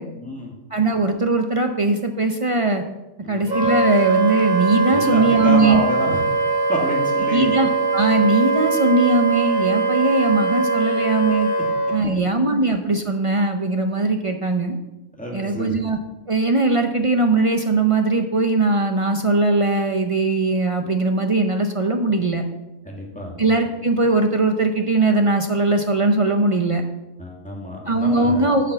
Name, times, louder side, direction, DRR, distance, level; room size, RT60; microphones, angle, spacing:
voice 1, 0.1-0.5 3.2-3.4 4.9-6.2 6.7-7.5 12.0-12.1 15.2-15.8 22.8-23.4 27.2-28.6, left 1 dB, 5° left, -2 dB, 2.0 m, -29 dB
voice 2, 0.7-2.8 3.3-5.8 7.3-11.5 11.9-14.7 15.3-16.0 16.3-22.4 23.4-26.8 27.9-28.7, right 3 dB, 40° right, 5 dB, 0.5 m, -20 dB
Wind instrument woodwind instrument, 3.5-12.0, right 2 dB, 85° right, 2.5 m, -21 dB
8.5 x 5.9 x 6.7 m, 1.0 s
omnidirectional pair, 1.4 m